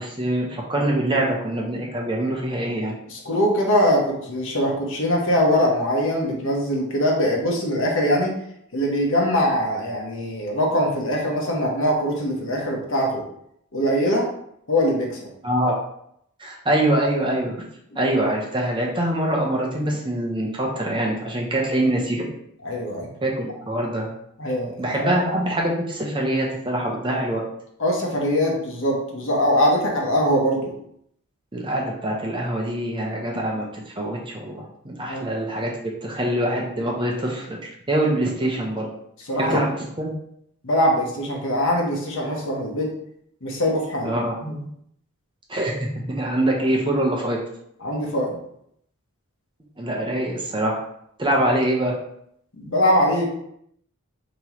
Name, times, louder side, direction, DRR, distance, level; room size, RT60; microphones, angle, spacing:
voice 1, 0.0-2.9 15.4-15.7 16.4-17.6 18.0-22.3 23.2-24.1 24.8-27.4 31.5-35.7 36.0-38.9 39.3-40.1 44.0-44.3 45.5-47.4 49.8-50.8 51.2-51.9, right 1 dB, 20° right, -1 dB, 0.8 m, -24 dB
voice 2, 3.1-8.3 8.7-13.2 13.7-14.3 14.7-15.3 22.6-23.1 24.4-25.1 27.8-30.7 35.1-35.3 39.3-39.6 40.6-42.9 43.4-44.1 44.4-44.6 47.8-48.4 52.6-53.3, equal, 60° left, -1 dB, 1.1 m, -22 dB
5.3 x 3.0 x 3.0 m, 0.72 s
head